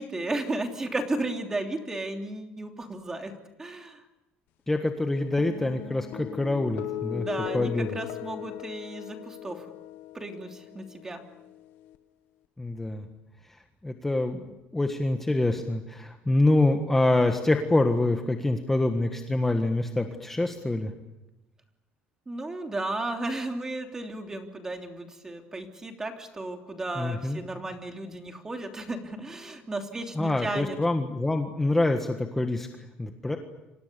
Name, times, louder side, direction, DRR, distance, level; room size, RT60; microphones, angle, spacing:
voice 1, 0.0-3.3 3.6-4.0 7.1-9.6 10.1-11.3 22.3-30.8, right 2 dB, 15° right, 4 dB, 3.1 m, -34 dB
voice 2, 4.7-7.3 7.5-7.9 12.6-13.1 13.8-20.9 26.9-27.4 30.1-33.4, left 2 dB, 10° left, 5 dB, 1.6 m, -26 dB
sound 1, 5.4-12.0, left 14 dB, 70° left, 1.6 m, -39 dB
29.5 x 26.0 x 6.9 m, 0.98 s
cardioid pair, 150°, 4 cm